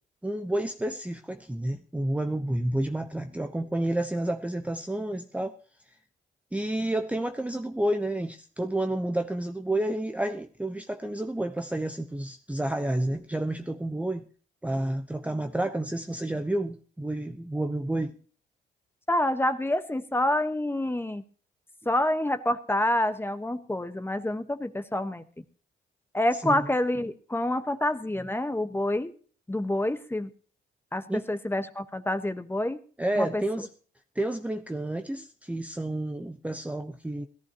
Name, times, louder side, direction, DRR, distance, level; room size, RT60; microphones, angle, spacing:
voice 1, 0.2-5.6 6.5-14.2 14.6-18.1 26.4-26.7 31.1-31.3 33.0-33.7 34.1-37.3, right 1 dB, 5° right, 1.0 m, -30 dB
voice 2, 19.1-21.2 21.8-25.2 26.1-29.1 29.5-30.3 30.9-32.8 33.2-33.4, left 1 dB, 10° left, 1.3 m, -27 dB
18.0 x 14.0 x 3.0 m
cardioid pair, 90°, 20 cm